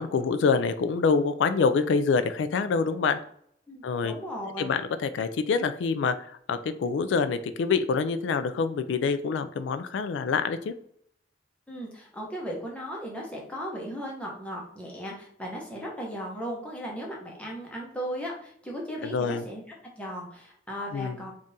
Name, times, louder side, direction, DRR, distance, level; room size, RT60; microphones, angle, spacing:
voice 1, 0.0-3.2 3.8-4.1 4.6-10.7 19.0-19.4 20.9-21.2, left 5 dB, 80° left, 11 dB, 0.3 m, -26 dB
voice 2, 3.7-4.7 11.7-19.6 20.0-21.3, equal, 5° left, -3 dB, 0.8 m, -36 dB
3.6 x 2.4 x 4.0 m, 0.66 s
head